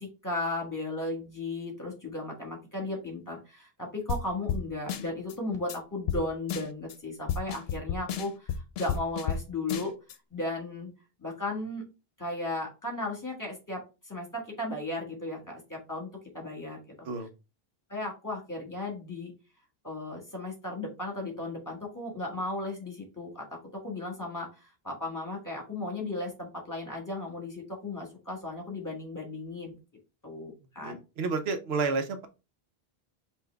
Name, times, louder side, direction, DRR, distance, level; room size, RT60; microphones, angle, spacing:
voice 1, 0.0-9.9 10.3-10.9 11.2-11.8 12.2-16.1 16.3-16.8 17.9-19.3 19.8-23.5 23.7-29.8 30.2-31.0, left 2 dB, 20° left, 0 dB, 1.5 m, -35 dB
sound 1, 4.1-4.2 4.5-4.6 4.9-5.3 5.7-5.8 6.1-6.2 6.5-6.9 7.3-9.4 9.7-10.1, left 7 dB, 80° left, 0.8 m, -32 dB
voice 2, 30.8-32.3, right 4 dB, 85° right, 7 dB, 1.0 m, -30 dB
5.6 x 2.6 x 3.4 m, 0.29 s
omnidirectional pair, 1.0 m